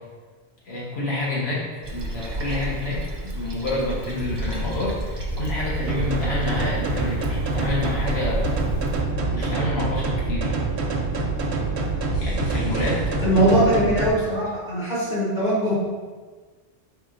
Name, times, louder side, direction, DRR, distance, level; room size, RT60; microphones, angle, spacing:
voice 1, 0.6-8.5 9.3-10.5 12.2-13.1, left 2 dB, 75° left, -6 dB, 1.4 m, -28 dB
Toilet flush, 1.8-9.0, right 1 dB, 45° right, 0.3 m, -32 dB
sound 1, 4.2-4.9 5.2-5.8 6.6-7.5 8.4-9.4 9.7-10.4 12.1-12.9, left 1 dB, 55° left, 0.4 m, -31 dB
sound 2, 5.9-14.1, right 3 dB, 85° right, 0.9 m, -26 dB
voice 2, 13.2-15.7, right 1 dB, 40° left, -8 dB, 1.3 m, -21 dB
4.5 x 3.6 x 2.4 m, 1.4 s
omnidirectional pair, 1.1 m